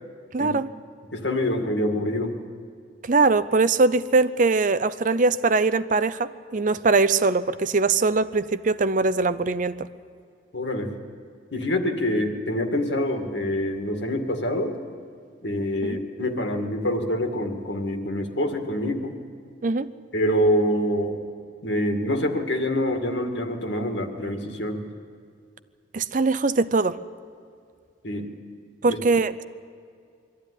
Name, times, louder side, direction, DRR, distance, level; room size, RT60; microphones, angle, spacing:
voice 1, 0.3-0.7 3.0-9.9 15.8-16.0 19.6-19.9 25.9-27.0 28.8-29.4, right 3 dB, 45° right, 14 dB, 0.6 m, -22 dB
voice 2, 1.1-2.4 10.5-10.9 11.5-14.7 15.4-19.1 20.1-21.2 21.6-24.8 28.0-28.3 28.9-29.0, left 1 dB, 70° left, 4 dB, 2.2 m, -26 dB
23.0 x 14.0 x 10.0 m, 2.3 s
head